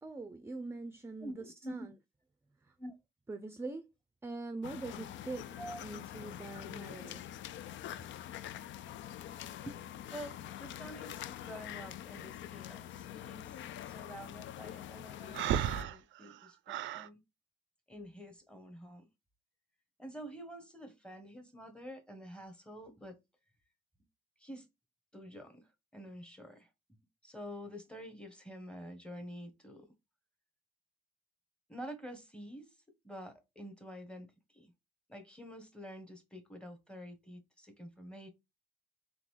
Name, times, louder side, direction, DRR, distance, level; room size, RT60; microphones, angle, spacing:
voice 1, 0.0-1.9 2.6-2.8 3.3-3.9 4.2-5.5 5.8-7.4, right 3 dB, 10° right, 0.5 m, -43 dB
voice 2, 1.2-1.9 2.8-2.9 5.6-5.8 9.6-9.8 10.1-17.2 17.9-19.1 20.0-23.2 24.4-24.7 25.1-29.9 31.7-32.7 33.0-34.7 35.1-38.3, equal, 5° left, 1.2 m, -48 dB
sound 1, 4.6-15.8, left 11 dB, 70° left, 0.4 m, -45 dB
Breathing, 15.3-17.1, right 11 dB, 75° right, 0.4 m, -34 dB
3.8 x 3.6 x 3.2 m
cardioid pair, 90°, 20 cm